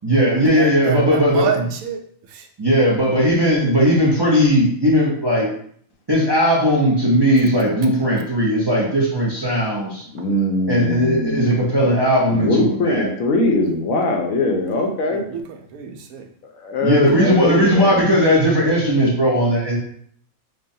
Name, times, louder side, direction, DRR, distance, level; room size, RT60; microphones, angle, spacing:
voice 1, 0.0-1.7 2.6-5.5 6.1-10.0 10.7-13.1 15.9-16.0 16.8-19.8, equal, 35° right, -5 dB, 0.4 m, -17 dB
voice 2, 0.6-2.0 2.3-2.5 10.2-10.3 15.1-16.3, right 7 dB, 85° right, 4 dB, 1.0 m, -28 dB
voice 3, 10.1-11.7 12.3-15.2 16.5-18.1, left 2 dB, 75° left, 2 dB, 1.1 m, -21 dB
5.3 x 2.1 x 2.6 m, 0.62 s
omnidirectional pair, 1.5 m